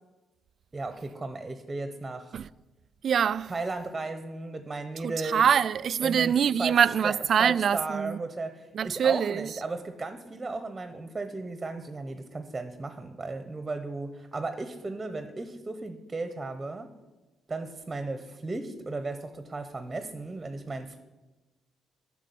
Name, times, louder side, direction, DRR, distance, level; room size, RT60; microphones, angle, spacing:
voice 1, 0.7-2.3 3.5-5.4 6.0-16.9 17.5-21.0, right 3 dB, 20° right, 0.9 m, -35 dB
voice 2, 3.0-3.5 5.0-8.2 8.7-9.5, right 8 dB, 55° right, 0.3 m, -24 dB
10.0 x 6.1 x 8.4 m
cardioid pair, 90°, 0 cm